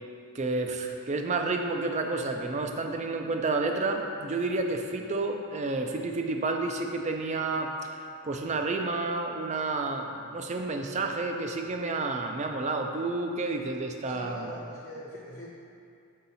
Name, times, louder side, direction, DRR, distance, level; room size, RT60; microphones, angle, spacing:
voice 1, 0.3-7.9 8.2-14.5, right 3 dB, 30° right, 4 dB, 0.4 m, -30 dB
voice 2, 14.1-15.5, equal, 45° left, -6 dB, 0.6 m, -42 dB
5.6 x 4.7 x 4.0 m, 2.4 s
head